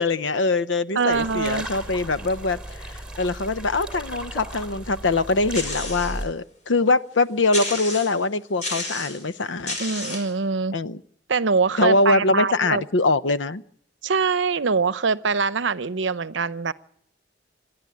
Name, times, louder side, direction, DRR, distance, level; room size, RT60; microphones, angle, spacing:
voice 1, 0.0-2.9 3.2-9.8 10.7-11.0 11.8-13.6, left 3 dB, 85° left, 14 dB, 0.8 m, -23 dB
voice 2, 1.0-1.7 9.8-10.8 11.3-12.8 14.0-16.7, right 4 dB, 80° right, 15 dB, 0.7 m, -23 dB
sound 1, 1.1-6.3, right 1 dB, 5° right, 2.9 m, -36 dB
sound 2, 5.5-6.2 6.7-6.8 7.5-8.2 8.6-9.2 9.7-10.3, left 2 dB, 40° left, 5.5 m, -31 dB
27.0 x 11.5 x 9.7 m, 0.72 s
head